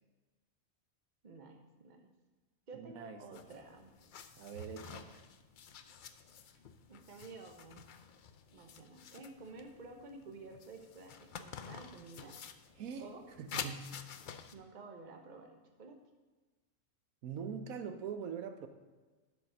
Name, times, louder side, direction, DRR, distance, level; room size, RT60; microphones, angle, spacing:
voice 1, 1.2-2.1 2.7-3.9 6.9-7.9 8.5-12.4 13.0-13.2 14.5-16.0, right 3 dB, 35° right, 3 dB, 1.1 m, -52 dB
voice 2, 2.7-3.2 4.4-5.2 12.8-13.1 13.4-14.0 17.2-18.7, right 6 dB, 80° right, 7 dB, 1.2 m, -43 dB
sound 1, 3.3-14.5, left 7 dB, 65° left, 0.5 m, -49 dB
11.0 x 5.2 x 6.3 m, 1.3 s
omnidirectional pair, 1.5 m